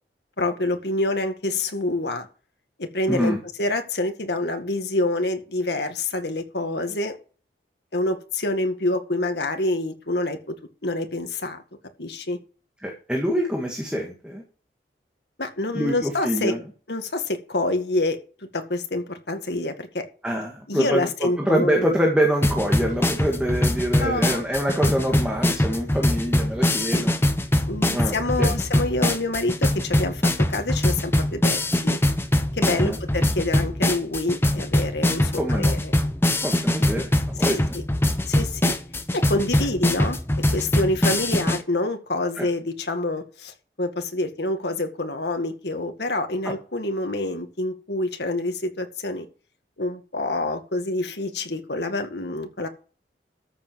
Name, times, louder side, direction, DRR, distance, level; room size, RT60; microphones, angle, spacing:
voice 1, 0.4-2.3 2.8-7.2 7.9-10.6 10.8-11.6 12.0-12.4 15.4-16.5 16.9-18.2 18.5-20.1 20.7-21.9 24.0-24.4 26.8-27.1 27.7-32.0 32.5-35.9 37.5-37.8 38.3-38.8 39.1-49.3 49.8-52.7, left 2 dB, 70° left, 6 dB, 1.9 m, -27 dB
voice 2, 3.1-3.4 12.8-14.4 15.7-16.6 20.2-27.2 27.9-28.5 32.7-33.0 35.4-35.8 36.4-37.8 42.4-42.5 46.4-46.5, equal, 5° right, 0 dB, 2.0 m, -25 dB
sound 1, 22.4-41.6, left 1 dB, 15° left, 0.9 m, -22 dB
13.5 x 7.4 x 4.7 m, 0.38 s
head